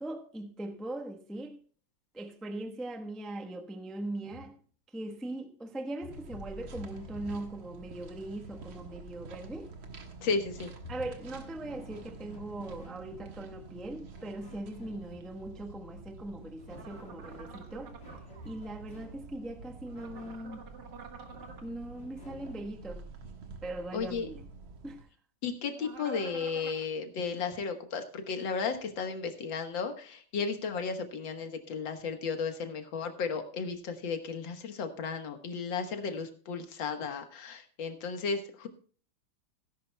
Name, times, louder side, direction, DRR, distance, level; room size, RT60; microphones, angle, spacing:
voice 1, 0.0-1.6 2.1-4.6 4.9-9.7 10.9-18.0 18.4-20.6 21.6-23.0 23.6-24.4 24.8-25.1, right 1 dB, ahead, 0.4 m, -40 dB
sound 1, 4.2-4.6 6.0-7.6 8.4-9.1 10.5-13.1 14.1-15.3 16.4-19.2 19.9-20.5 21.3-22.7, left 3 dB, 35° left, 2.8 m, -51 dB
sound 2, 6.1-25.0, right 4 dB, 80° right, 2.2 m, -48 dB
voice 2, 10.2-10.7 23.9-24.3 25.4-38.7, left 5 dB, 70° left, 2.0 m, -34 dB
sound 3, 16.7-18.2 19.9-21.6 25.7-26.8, right 5 dB, 60° right, 2.0 m, -48 dB
17.5 x 10.5 x 2.2 m
omnidirectional pair, 2.2 m